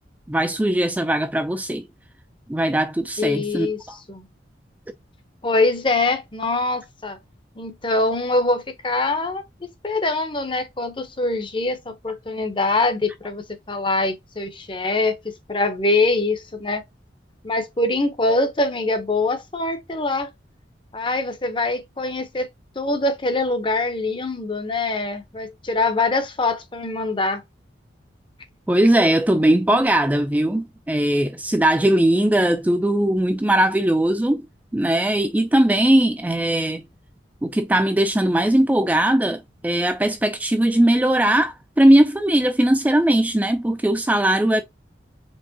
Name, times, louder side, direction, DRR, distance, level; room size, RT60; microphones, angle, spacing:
voice 1, 0.3-1.8 2.5-4.0 28.7-34.4 34.7-36.8 37.4-44.6, right 1 dB, 10° right, 0.3 m, -19 dB
voice 2, 3.2-4.3 5.4-7.2 7.6-9.4 9.8-16.8 17.4-20.3 20.9-22.5 22.8-27.4, left 2 dB, 25° left, 0.7 m, -23 dB
4.6 x 3.5 x 2.7 m
head